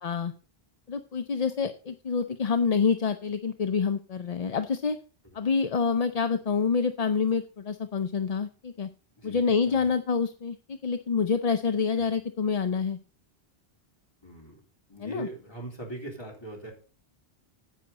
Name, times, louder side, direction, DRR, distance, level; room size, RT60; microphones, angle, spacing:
voice 1, 0.0-0.3 0.9-5.0 5.3-8.9 9.2-13.0 15.0-15.3, left 5 dB, 45° left, 9 dB, 0.6 m, -27 dB
voice 2, 9.2-9.9 12.0-12.1 14.2-14.6 14.9-16.7, right 1 dB, 25° left, -2 dB, 3.5 m, -41 dB
10.0 x 8.0 x 4.0 m, 0.36 s
omnidirectional pair, 1.1 m